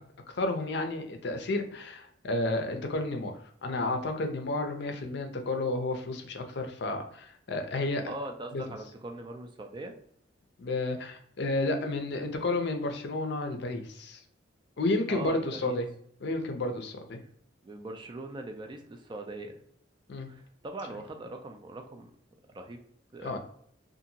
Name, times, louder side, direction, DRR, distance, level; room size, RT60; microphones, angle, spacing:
voice 1, 0.4-8.1 8.5-8.6 10.6-14.2 14.8-15.9 16.2-17.2 20.1-20.3 23.2-23.4, left 2 dB, 60° left, 5 dB, 0.5 m, -31 dB
voice 2, 8.1-9.9 15.1-15.8 17.6-19.6 20.3-22.1 22.5-22.8 23.1-23.4, right 2 dB, 25° right, 4 dB, 0.3 m, -41 dB
2.7 x 2.5 x 2.6 m, 0.66 s
head